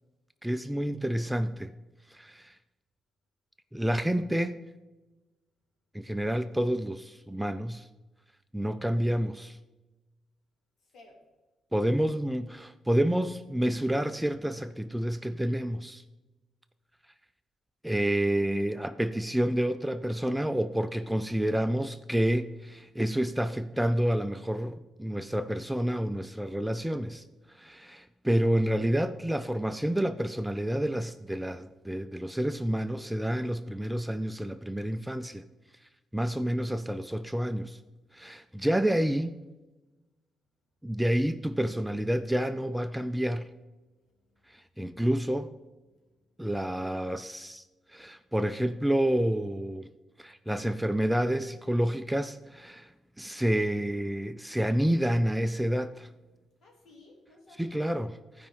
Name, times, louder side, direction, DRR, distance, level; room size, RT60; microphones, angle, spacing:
voice 1, 0.4-1.7 2.1-2.5 3.7-4.6 5.9-7.9 8.5-9.6 11.7-16.0 17.8-27.2 27.6-35.5 36.1-37.8 38.1-39.4 40.8-43.5 44.5-45.5 46.4-47.6 47.9-49.9 50.2-52.9 53.2-56.1 57.6-58.5, right 1 dB, 5° right, 0.4 m, -29 dB
voice 2, 10.8-11.2 43.8-44.5 45.9-46.5 56.6-57.9, left 2 dB, 65° left, 3.2 m, -57 dB
15.0 x 5.2 x 5.5 m
cardioid pair, 130°, 0 cm